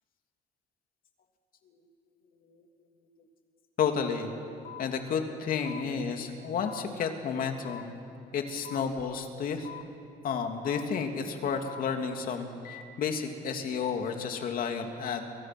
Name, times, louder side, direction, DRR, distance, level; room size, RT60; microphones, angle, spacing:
voice 1, 3.8-4.3 4.8-7.9 8.3-9.7 10.2-15.3, left 6 dB, 55° left, 4 dB, 2.9 m, -31 dB
sound 1, 4.6-4.8 5.6-5.8 6.6-6.8 7.6-7.8 8.6-8.8 9.6-9.8 10.6-10.8 11.6-11.8 12.6-12.8, left 11 dB, 75° left, 2.4 m, -43 dB
29.0 x 24.5 x 6.2 m, 2.7 s
cardioid pair, 110°, 17 cm